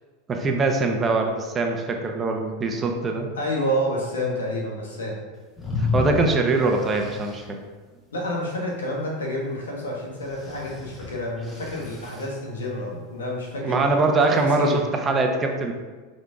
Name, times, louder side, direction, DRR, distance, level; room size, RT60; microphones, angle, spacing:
voice 1, 0.3-3.3 5.8-7.6 13.6-15.7, right 3 dB, 25° right, 3 dB, 1.0 m, -23 dB
voice 2, 3.4-5.2 8.1-13.9 14.3-14.8, equal, 85° left, -2 dB, 1.7 m, -29 dB
sound 1, 5.6-7.4 10.2-12.3, left 4 dB, 15° left, 1.8 m, -31 dB
5.9 x 5.2 x 3.6 m, 1.4 s
hypercardioid pair, 90°, 0 cm